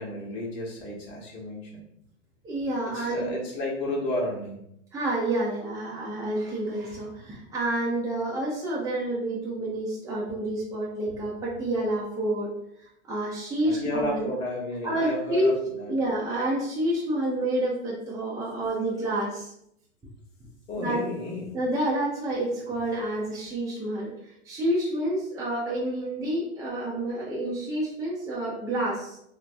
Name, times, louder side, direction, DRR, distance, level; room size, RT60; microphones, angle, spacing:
voice 1, 0.0-1.9 2.8-4.6 13.6-15.9 20.7-21.6, left 1 dB, 30° left, -2 dB, 1.1 m, -32 dB
voice 2, 2.4-3.4 4.9-12.5 12.8-14.3 14.8-15.5 15.9-19.5 20.8-21.0 21.5-29.2, right 1 dB, 10° right, -6 dB, 0.7 m, -29 dB
4.1 x 2.2 x 2.5 m, 0.76 s
figure-of-eight pair, 95°, 37 cm